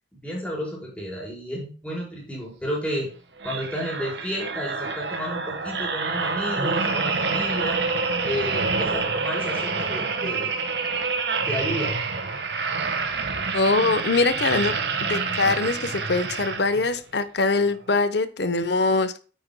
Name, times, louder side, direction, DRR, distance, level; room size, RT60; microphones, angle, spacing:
voice 1, 0.2-3.1 3.4-7.8 8.2-10.5 11.5-11.9, equal, 5° left, -3 dB, 4.5 m, -31 dB
sound 1, 3.4-17.0 17.5-17.7, right 4 dB, 65° right, 1.5 m, -27 dB
voice 2, 13.5-14.7 15.0-19.2, left 3 dB, 65° left, 13 dB, 0.9 m, -23 dB
9.3 x 9.0 x 2.2 m, 0.37 s
head